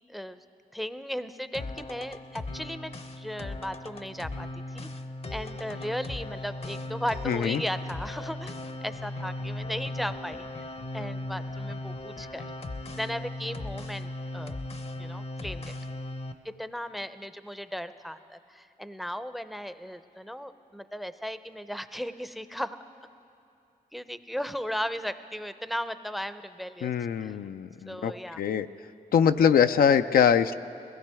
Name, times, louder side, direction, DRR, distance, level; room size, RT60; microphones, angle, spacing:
voice 1, 0.7-4.9 5.3-8.6 8.8-10.5 10.9-12.5 13.0-14.6 15.0-15.7 16.4-22.8 23.9-26.9 27.2-27.4 27.9-28.4, equal, ahead, 12 dB, 0.5 m, -36 dB
sound 1, 1.5-16.3, left 2 dB, 45° left, 0.7 m, -37 dB
voice 2, 7.3-7.6 26.8-28.7 29.1-30.5, left 8 dB, 85° left, 9 dB, 0.4 m, -23 dB
21.0 x 16.5 x 3.5 m, 2.7 s
cardioid pair, 60°, 15 cm